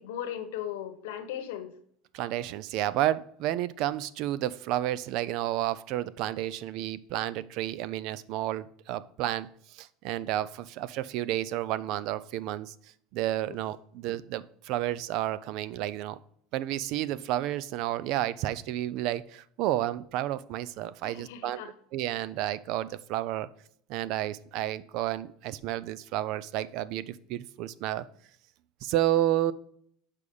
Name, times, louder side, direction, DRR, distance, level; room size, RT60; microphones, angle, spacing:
voice 1, 0.0-1.7 13.4-13.6 21.0-21.7, left 10 dB, 90° left, 9 dB, 1.1 m, -37 dB
voice 2, 2.1-12.7 13.1-16.2 16.5-21.6 21.9-23.5 23.9-28.1 28.8-29.5, right 13 dB, 55° right, 18 dB, 0.4 m, -31 dB
6.6 x 4.9 x 5.4 m, 0.64 s
cardioid pair, 150°, 0 cm